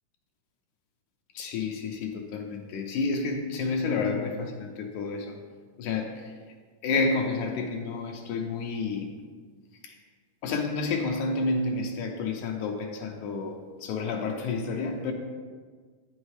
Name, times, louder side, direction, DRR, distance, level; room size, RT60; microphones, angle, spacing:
voice 1, 1.3-5.4 5.8-6.3 6.8-9.1 9.8-10.0 10.4-15.1, left 3 dB, 80° left, 2 dB, 1.8 m, -30 dB
8.8 x 6.3 x 3.2 m, 1.5 s
omnidirectional pair, 4.1 m